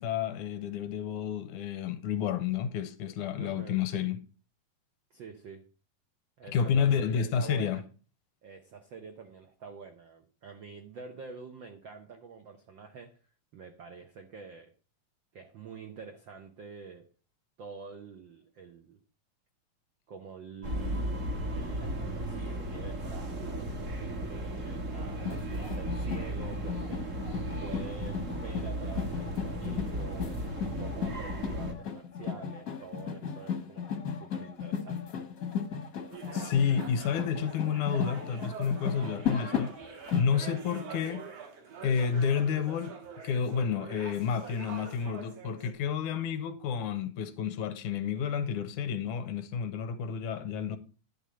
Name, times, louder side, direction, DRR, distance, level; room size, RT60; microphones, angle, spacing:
voice 1, 0.0-4.2 6.5-7.8 36.3-39.7 40.2-41.3 41.8-43.0 43.2-50.8, left 7 dB, 85° left, 2.3 m, -30 dB
voice 2, 3.3-3.8 5.1-5.7 6.4-7.8 8.4-13.2 13.5-14.7 15.3-17.1 17.6-19.0 20.1-27.3 27.6-30.4 30.8-35.0, right 5 dB, 75° right, 1.0 m, -47 dB
sound 1, 20.6-31.7, right 1 dB, 40° right, 1.1 m, -35 dB
sound 2, 25.2-40.2, left 7 dB, 50° left, 1.0 m, -36 dB
sound 3, 36.1-45.7, right 6 dB, 60° right, 2.4 m, -45 dB
10.5 x 3.7 x 7.5 m
omnidirectional pair, 3.4 m